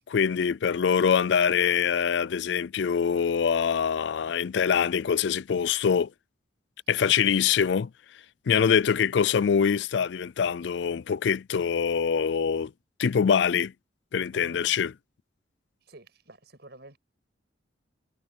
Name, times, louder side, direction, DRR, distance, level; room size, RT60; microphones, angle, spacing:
voice 1, 0.1-6.1 6.9-7.9 8.5-12.7 13.0-13.7 14.1-14.9, left 7 dB, 60° left, 0.4 m, -24 dB
voice 2, 14.3-14.7 15.8-17.0, right 1 dB, 55° right, 7.8 m, -50 dB
head